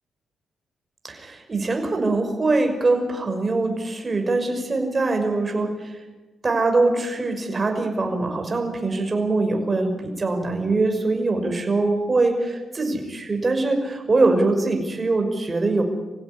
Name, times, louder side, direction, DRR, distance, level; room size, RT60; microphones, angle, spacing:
voice 1, 1.0-6.0 6.4-15.8, right 3 dB, 30° right, 4 dB, 5.8 m, -23 dB
25.5 x 16.0 x 9.8 m, 1.2 s
cardioid pair, 100°, 0 cm